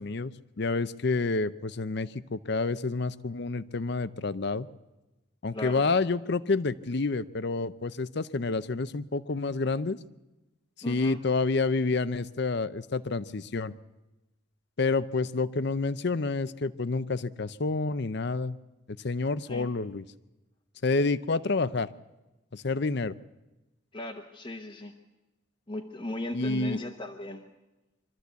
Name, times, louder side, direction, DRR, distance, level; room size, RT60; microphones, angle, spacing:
voice 1, 0.0-4.7 5.4-10.0 10.9-13.7 14.8-18.6 19.0-20.0 20.8-21.9 22.5-23.2 26.3-26.8, left 3 dB, 55° left, 15 dB, 0.6 m, -29 dB
voice 2, 5.5-5.8 10.8-11.2 19.5-19.7 23.9-24.9 25.7-27.5, left 1 dB, 25° left, 1 dB, 1.0 m, -37 dB
24.0 x 13.5 x 8.2 m, 1.1 s
head